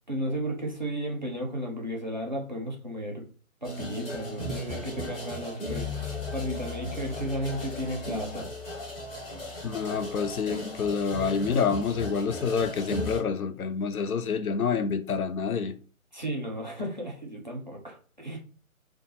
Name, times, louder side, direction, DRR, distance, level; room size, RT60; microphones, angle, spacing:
voice 1, 0.1-3.3 3.6-8.5 16.1-18.4, equal, 35° right, 0.5 m, -34 dB
sound 1, 3.6-13.2, left 2 dB, 40° left, 1.2 m, -36 dB
voice 2, 9.6-15.8, left 6 dB, 80° left, 0.5 m, -28 dB
2.2 x 2.2 x 2.7 m
figure-of-eight pair, 145°, 43 cm